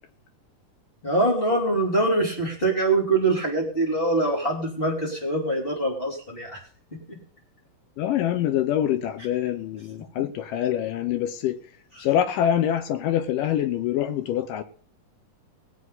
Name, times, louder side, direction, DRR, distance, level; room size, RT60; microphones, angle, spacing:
voice 1, 1.0-6.6 7.1-7.2, right 2 dB, 15° left, 3.0 m, -24 dB
voice 2, 8.0-11.6 12.0-14.6, left 10 dB, 75° left, 2.3 m, -25 dB
19.0 x 8.2 x 4.1 m
omnidirectional pair, 4.0 m